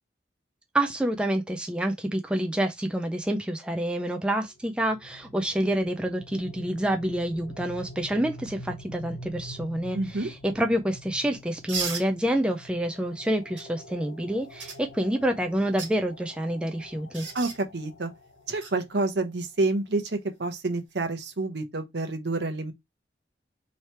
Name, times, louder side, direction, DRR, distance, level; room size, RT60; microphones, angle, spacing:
voice 1, 0.7-17.3, right 1 dB, 5° right, 0.3 m, -28 dB
sound 1, 4.6-19.4, equal, 80° left, 0.8 m, -46 dB
voice 2, 9.9-10.3 17.3-18.1 18.5-22.7, right 2 dB, 65° right, 0.8 m, -28 dB
sound 2, 11.7-12.1 13.6-13.7 14.6-14.8 15.6-15.9 17.1-17.6 18.6-18.7 20.8-21.0, right 5 dB, 85° right, 1.5 m, -33 dB
3.2 x 2.9 x 4.3 m
head